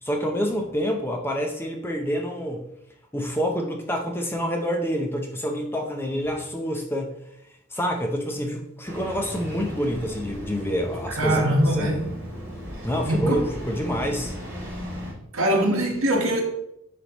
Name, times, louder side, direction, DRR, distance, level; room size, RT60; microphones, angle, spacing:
voice 1, 0.0-2.6 3.1-7.1 7.7-11.4 11.7-12.0 12.8-14.3, equal, 10° left, 0.6 m, -27 dB
Engine starting, 8.8-15.1, equal, 10° right, 2.4 m, -36 dB
voice 2, 11.2-12.0 13.1-13.5 15.3-16.4, right 1 dB, 70° right, 1.3 m, -22 dB
9.8 x 3.5 x 3.0 m
head